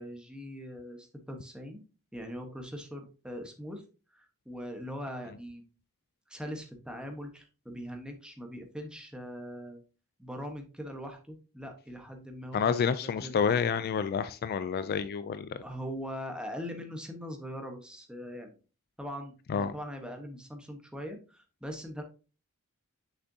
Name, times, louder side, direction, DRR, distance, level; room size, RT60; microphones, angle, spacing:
voice 1, 0.0-1.8 2.1-3.8 4.1-5.7 6.3-9.8 10.2-13.3 15.6-18.6 19.0-22.0, equal, 5° right, 4 dB, 1.1 m, -41 dB
voice 2, 12.5-15.6 19.5-19.7, left 6 dB, 45° left, 13 dB, 0.3 m, -29 dB
6.2 x 6.0 x 2.7 m, 0.34 s
head